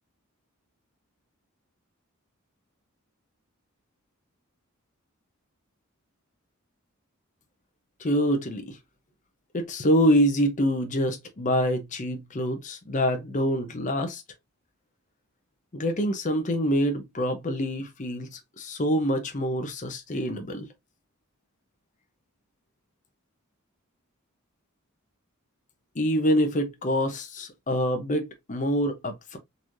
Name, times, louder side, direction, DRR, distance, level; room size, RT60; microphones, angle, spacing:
voice 1, 8.0-8.8 9.5-14.2 15.7-20.7 26.0-29.4, equal, 35° left, 0.7 m, -26 dB
4.0 x 3.1 x 2.5 m
head